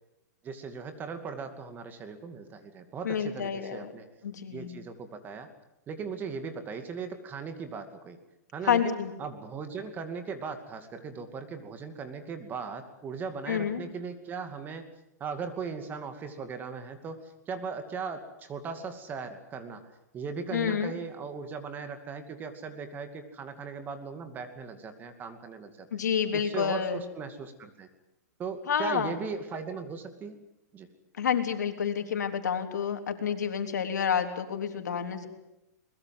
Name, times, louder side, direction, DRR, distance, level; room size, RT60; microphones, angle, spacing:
voice 1, 0.4-4.1 4.5-5.5 5.9-8.2 8.5-8.9 9.2-14.9 15.2-25.9 26.3-27.9 28.4-30.4 30.7-30.9, right 5 dB, 20° right, 8 dB, 2.4 m, -38 dB
voice 2, 3.0-3.9 4.2-4.8 8.7-9.1 13.5-13.8 20.5-20.9 25.9-27.0 28.7-29.1 31.2-35.3, left 7 dB, 85° left, 6 dB, 3.5 m, -29 dB
22.5 x 21.0 x 7.9 m, 0.90 s
hypercardioid pair, 140°, 9 cm